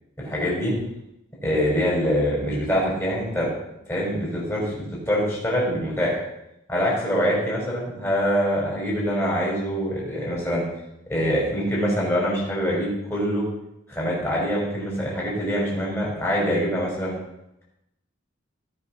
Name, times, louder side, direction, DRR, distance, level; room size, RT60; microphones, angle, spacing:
voice 1, 0.2-0.7 1.4-3.5 3.9-6.2 6.7-10.6 11.1-13.4 13.9-17.1, equal, 15° left, -5 dB, 6.3 m, -24 dB
19.5 x 6.8 x 6.1 m, 0.85 s
head